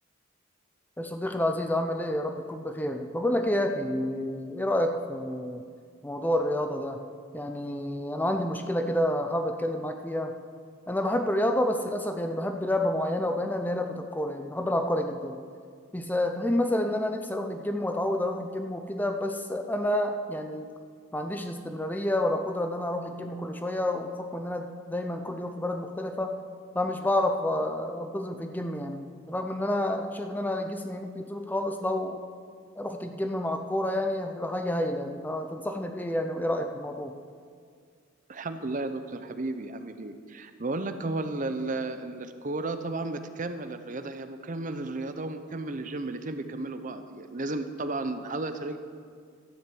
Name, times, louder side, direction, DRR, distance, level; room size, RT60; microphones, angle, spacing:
voice 1, 1.0-5.6 6.0-7.0 7.3-10.3 10.9-15.4 15.9-20.7 21.1-26.4 26.7-32.2 32.8-37.1, left 1 dB, 10° left, 5 dB, 0.5 m, -29 dB
voice 2, 38.3-48.8, right 2 dB, 40° right, 9 dB, 0.7 m, -33 dB
12.5 x 7.4 x 7.7 m, 2.1 s
head